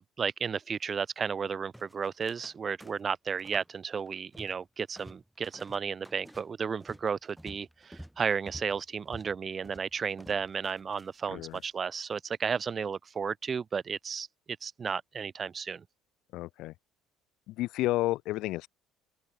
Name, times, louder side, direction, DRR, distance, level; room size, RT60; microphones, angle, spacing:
voice 1, 0.0-14.3 14.6-15.8, right 6 dB, 35° right, 0.8 m, -33 dB
sound 1, 1.7-2.5 2.8-3.7 4.0-4.7 5.0-11.7, equal, 5° right, 7.4 m, -51 dB
voice 2, 11.3-11.6 16.3-16.7 17.5-18.7, left 17 dB, 70° left, 1.3 m, -31 dB
supercardioid pair, 90°, 0 cm